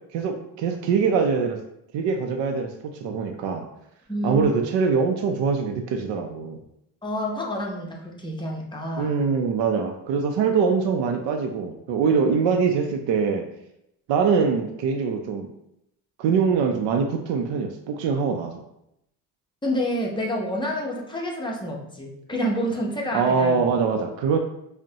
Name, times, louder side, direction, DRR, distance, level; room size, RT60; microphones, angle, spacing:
voice 1, 0.1-1.6 1.9-3.6 4.2-6.6 9.0-13.4 14.1-15.5 16.2-18.6 23.1-24.4, right 5 dB, 80° right, 3 dB, 0.5 m, -23 dB
voice 2, 4.1-4.5 7.0-9.1 19.6-23.6, equal, 10° left, -1 dB, 0.6 m, -28 dB
5.2 x 2.1 x 2.7 m, 0.80 s
cardioid pair, 125°, 43 cm